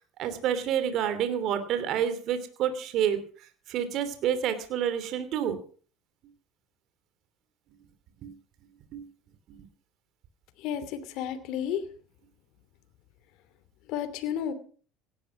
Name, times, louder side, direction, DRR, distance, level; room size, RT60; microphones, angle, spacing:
voice 1, 0.2-3.2 3.7-5.6 8.2-8.3 8.9-9.1, right 9 dB, 60° right, 11 dB, 2.9 m, -28 dB
voice 2, 10.6-11.8 13.9-14.5, left 9 dB, 65° left, 11 dB, 2.8 m, -32 dB
17.5 x 12.5 x 6.0 m, 0.42 s
supercardioid pair, 90°, 0 cm